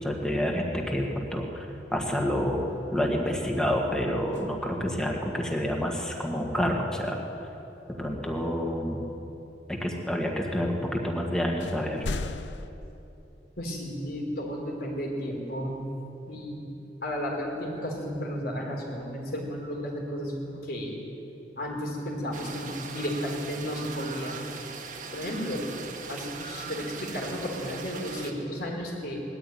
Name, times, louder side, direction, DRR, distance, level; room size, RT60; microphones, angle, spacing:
voice 1, 0.0-7.2 8.0-9.0 9.7-12.1, equal, 5° left, 0 dB, 1.9 m, -28 dB
sound 1, 2.7-3.4 4.2-5.2 8.7-8.8 10.8-10.9 11.6-12.7, left 3 dB, 90° left, 0.7 m, -38 dB
voice 2, 13.6-15.8 16.3-21.0 21.6-24.4 25.1-25.7 26.1-29.2, equal, 60° left, 0 dB, 4.5 m, -33 dB
sound 2, 22.3-28.3, right 5 dB, 45° right, 1.6 m, -40 dB
20.0 x 14.0 x 9.4 m, 3.0 s
head